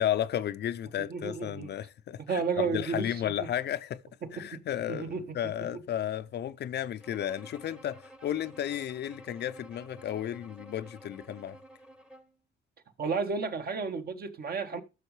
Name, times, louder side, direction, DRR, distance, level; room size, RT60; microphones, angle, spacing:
voice 1, 0.0-4.0 4.3-11.6, left 11 dB, 60° left, 0.5 m, -33 dB
voice 2, 1.1-1.7 2.3-3.5 4.2-4.6 4.9-5.8 13.0-14.8, right 5 dB, 50° right, 1.3 m, -33 dB
Bowed string instrument, 7.0-12.4, right 1 dB, 5° right, 0.9 m, -52 dB
13.5 x 6.3 x 3.2 m
cardioid pair, 90°, 20 cm